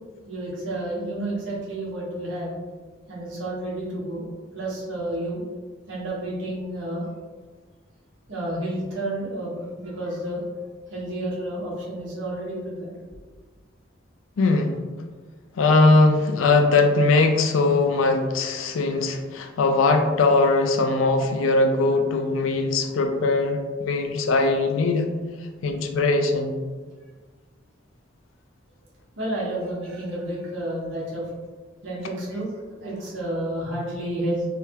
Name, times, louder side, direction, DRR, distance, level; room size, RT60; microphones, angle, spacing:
voice 1, 0.2-2.5 3.1-4.3 4.5-5.4 5.9-7.1 8.3-10.4 10.9-12.9 29.2-31.2 31.8-34.5, right 1 dB, 70° right, -6 dB, 1.1 m, -30 dB
voice 2, 14.4-14.7 15.5-25.1 25.6-26.5, left 3 dB, 85° left, 6 dB, 0.4 m, -20 dB
3.4 x 2.2 x 2.8 m, 1.4 s
head